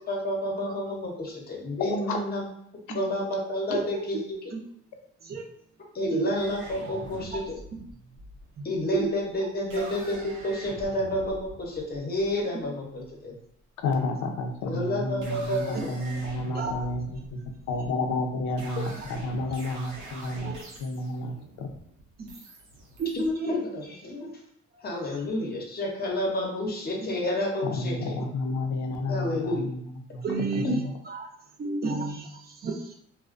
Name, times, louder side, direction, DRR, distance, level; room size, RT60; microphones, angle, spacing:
voice 1, 0.1-2.5 2.9-4.4 5.9-7.6 8.6-13.3 14.6-15.8 23.1-24.3 24.8-28.2 29.1-29.8 30.6-30.7, left 1 dB, 30° left, 0 dB, 0.7 m, -30 dB
voice 2, 1.8-2.2 13.8-17.1 17.3-17.4 17.7-20.5 20.8-21.7 27.7-29.8 30.1-30.2 30.7-30.9, left 2 dB, 75° left, 4 dB, 0.5 m, -30 dB
sound 1, 6.3-13.1 14.2-14.6 15.0-23.3, right 2 dB, 80° right, 0.7 m, -45 dB
voice 3, 30.2-30.7 31.1-31.3 31.6-32.9, right 5 dB, 30° right, 1 dB, 0.5 m, -31 dB
2.3 x 2.1 x 2.4 m, 0.69 s
cardioid pair, 90°, 30 cm